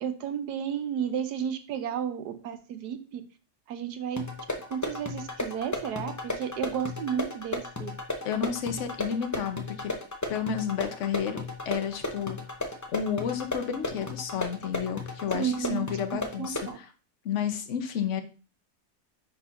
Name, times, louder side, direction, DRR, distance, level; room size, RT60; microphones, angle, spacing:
voice 1, 0.0-3.2 3.7-4.2 4.7-7.9 15.3-15.9 16.4-16.8, right 8 dB, 80° right, 9 dB, 1.3 m, -32 dB
sound 1, 4.2-16.8, left 2 dB, 30° left, 0.3 m, -35 dB
voice 2, 8.2-9.9 10.3-12.4 12.9-16.9 17.2-18.2, left 8 dB, 55° left, 7 dB, 1.0 m, -31 dB
9.8 x 4.3 x 2.5 m, 0.35 s
omnidirectional pair, 1.7 m